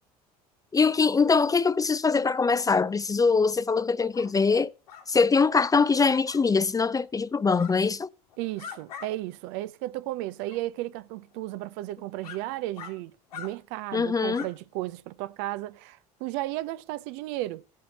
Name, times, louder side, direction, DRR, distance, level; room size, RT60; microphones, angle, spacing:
voice 1, 0.7-4.7 5.1-8.1 13.9-14.5, left 4 dB, 20° left, 0.5 m, -23 dB
sound 1, 4.1-4.3 4.9-5.1 5.9-6.4 7.5-7.7 8.3-9.1 9.5-9.6 10.4-10.6 11.3-11.4 12.2-12.4 12.8-12.9 13.3-13.5 14.3-14.5, left 8 dB, 80° left, 3.5 m, -42 dB
voice 2, 8.4-17.6, right 16 dB, 65° right, 0.7 m, -34 dB
17.0 x 8.4 x 3.0 m
hypercardioid pair, 65°, 19 cm